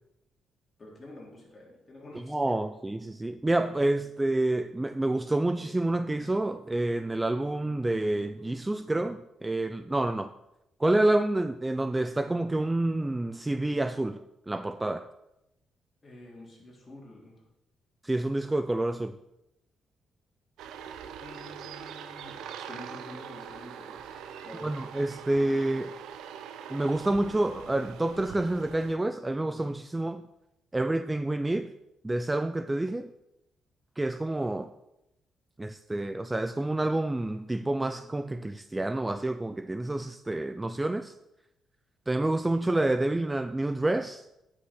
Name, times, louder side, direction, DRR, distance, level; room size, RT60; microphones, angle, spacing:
voice 1, 0.8-2.5 16.0-17.4 21.2-24.8, left 1 dB, 30° left, 3.5 m, -48 dB
voice 2, 2.3-10.3 10.8-14.2 14.5-15.1 18.0-19.2 24.6-25.9 26.7-30.3 30.7-31.7 32.0-33.1 34.0-34.7 35.6-41.1 42.1-44.2, right 2 dB, 15° right, 0.4 m, -28 dB
sound 1, 20.6-28.9, right 8 dB, 85° right, 0.6 m, -43 dB
9.6 x 5.9 x 5.9 m
cardioid pair, 90°, 0 cm